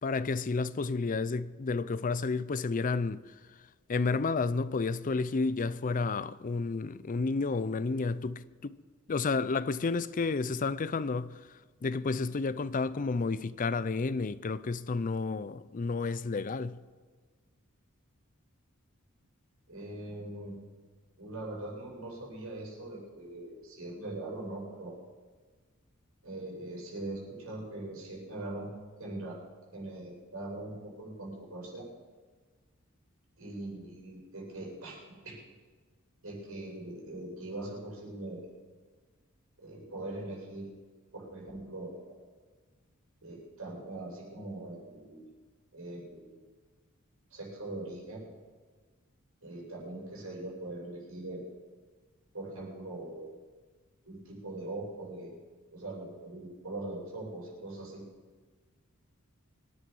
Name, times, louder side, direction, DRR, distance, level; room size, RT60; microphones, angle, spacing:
voice 1, 0.0-3.2 3.9-8.8 9.1-11.4 11.8-16.8, left 4 dB, 40° left, 0.5 m, -31 dB
voice 2, 19.7-20.5 21.2-24.9 26.2-28.7 29.0-29.4 29.7-31.9 33.4-35.0 35.2-35.4 36.2-38.4 39.6-40.7 41.1-42.1 43.2-45.3 45.7-46.5 47.3-48.3 49.4-51.5 52.3-53.3 54.0-55.3 55.7-58.0, right 2 dB, 85° right, 6.9 m, -41 dB
24.5 x 10.5 x 5.5 m
head